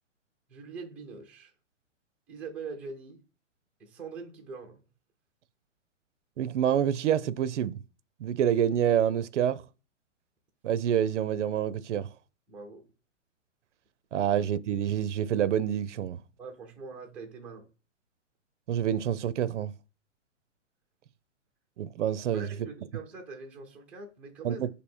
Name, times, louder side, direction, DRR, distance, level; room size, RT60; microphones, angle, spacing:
voice 1, 0.5-1.5 2.3-3.2 3.8-4.8 12.5-12.8 16.4-17.7 22.3-24.7, right 4 dB, 5° right, 0.5 m, -43 dB
voice 2, 6.4-7.7 8.2-9.6 10.6-12.1 14.1-16.2 18.7-19.7 21.8-22.5 24.4-24.7, right 9 dB, 70° right, 0.5 m, -27 dB
3.5 x 2.7 x 4.3 m
hypercardioid pair, 140°, 38 cm